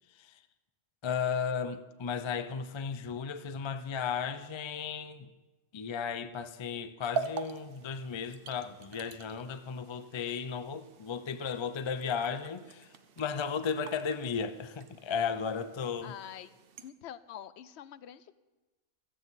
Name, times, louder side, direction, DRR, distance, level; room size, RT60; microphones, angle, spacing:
voice 1, 0.1-0.4 1.0-5.3 5.7-16.1, left 6 dB, 45° left, 0.3 m, -35 dB
sound 1, 7.0-16.9, right 5 dB, 55° right, 0.8 m, -44 dB
voice 2, 16.0-16.5 16.8-18.3, left 10 dB, 65° left, 0.8 m, -46 dB
16.0 x 14.0 x 4.1 m
omnidirectional pair, 1.4 m